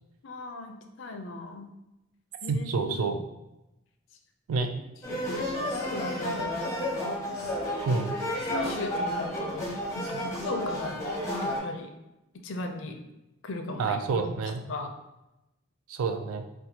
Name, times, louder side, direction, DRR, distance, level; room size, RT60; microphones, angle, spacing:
voice 1, 0.2-1.7 2.4-3.1 5.1-7.4 8.5-9.7 9.9-11.0 11.4-11.9 12.4-13.0 13.4-14.3 14.7-14.9, left 2 dB, 60° left, 5 dB, 0.4 m, -38 dB
voice 2, 2.5-3.2 4.5-4.7 7.9-8.2 13.8-14.6 15.9-16.5, right 4 dB, 85° right, 7 dB, 0.4 m, -28 dB
sound 1, 5.0-11.6, left 1 dB, 15° left, 0.6 m, -31 dB
4.2 x 2.3 x 2.8 m, 0.95 s
head